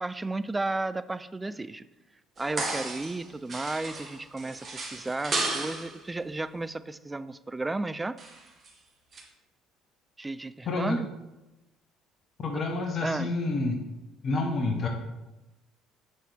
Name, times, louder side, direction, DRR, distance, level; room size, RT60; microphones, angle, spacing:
voice 1, 0.0-1.9 2.4-8.2 10.2-11.1 12.5-12.6 13.0-13.3, right 2 dB, 15° right, 13 dB, 0.3 m, -33 dB
sound 1, 2.4-3.2 3.5-6.0 8.2-8.7 9.1-9.2, right 3 dB, 35° right, 1.7 m, -34 dB
voice 2, 10.7-11.0 12.4-13.8 14.2-14.9, left 3 dB, 40° left, 3 dB, 1.0 m, -28 dB
7.0 x 5.6 x 3.4 m, 1.0 s
figure-of-eight pair, 55°, 0 cm